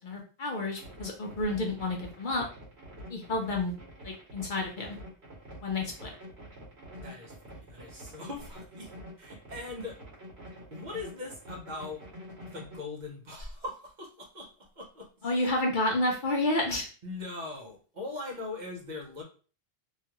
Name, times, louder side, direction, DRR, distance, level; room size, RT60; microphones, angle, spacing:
voice 1, 0.0-2.5 3.1-3.7 4.0-5.0 5.6-6.1 15.2-16.9, left 2 dB, 55° left, 1 dB, 0.7 m, -30 dB
sound 1, 0.8-12.8, equal, 65° right, 1.5 m, -47 dB
voice 2, 7.0-8.9 9.2-10.0 10.7-12.0 12.5-15.1 17.0-19.2, left 3 dB, 45° right, 0 dB, 0.8 m, -40 dB
3.1 x 2.4 x 2.8 m, 0.38 s
omnidirectional pair, 1.1 m